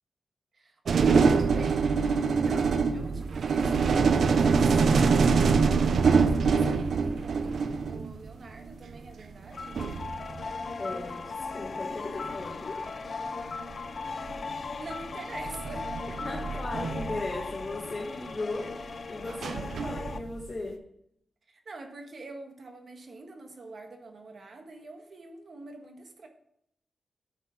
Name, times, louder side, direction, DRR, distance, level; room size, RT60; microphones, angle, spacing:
voice 1, 0.5-9.8 13.7-13.9 14.8-15.9 21.5-26.3, right 3 dB, 60° right, 4 dB, 1.5 m, -45 dB
sound 1, 0.9-8.3 9.5-9.6 9.7-11.1 12.2-12.5 13.6-13.7 14.2-14.5 15.4-17.8 19.2-20.5, right 5 dB, 80° right, 0.6 m, -25 dB
sound 2, 9.5-20.2, left 4 dB, 55° left, 0.5 m, -38 dB
voice 2, 10.8-12.9 16.2-20.8, left 2 dB, 35° left, 0 dB, 1.5 m, -37 dB
10.0 x 5.9 x 5.8 m, 0.74 s
wide cardioid pair, 90°, 0 cm